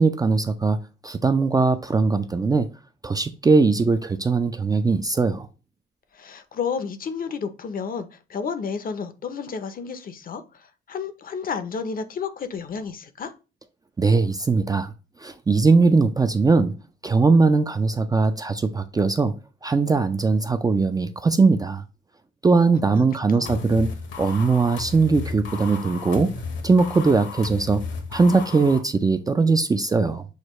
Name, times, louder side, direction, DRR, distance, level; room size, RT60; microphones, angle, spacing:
voice 1, 0.0-2.7 3.0-5.5 14.0-14.9 15.2-16.7 17.0-19.3 19.6-21.8 22.4-23.9 24.2-26.3 26.6-27.8 28.1-30.3, right 4 dB, 20° right, 0.3 m, -20 dB
voice 2, 6.1-13.3 22.9-23.6, left 6 dB, 45° left, 0.6 m, -32 dB
sound 1, 23.5-28.8, left 5 dB, 70° left, 1.0 m, -34 dB
6.4 x 2.2 x 3.1 m
cardioid pair, 90°, 20 cm